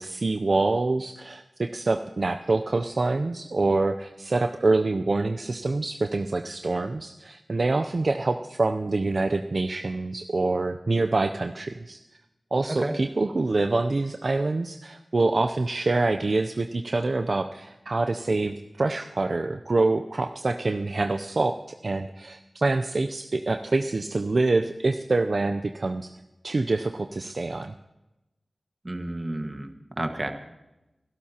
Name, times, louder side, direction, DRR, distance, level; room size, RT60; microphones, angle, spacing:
voice 1, 0.0-12.0 12.5-26.1 26.4-27.7, right 3 dB, 60° right, 7 dB, 0.5 m, -26 dB
voice 2, 28.8-29.7 30.0-30.3, right 1 dB, 35° right, 5 dB, 1.6 m, -30 dB
24.0 x 12.0 x 2.9 m, 0.98 s
cardioid pair, 45°, 0 cm